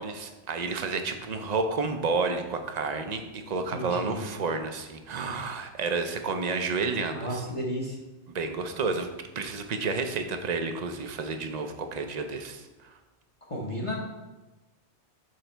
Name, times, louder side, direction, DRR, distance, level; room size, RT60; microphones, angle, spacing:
voice 1, 0.0-7.5 8.3-9.1 9.4-12.9, right 4 dB, 50° right, 6 dB, 0.6 m, -30 dB
voice 2, 3.7-4.2 7.1-8.0 13.5-14.0, equal, 30° left, -3 dB, 0.9 m, -33 dB
6.4 x 4.0 x 4.4 m, 1.1 s
omnidirectional pair, 1.2 m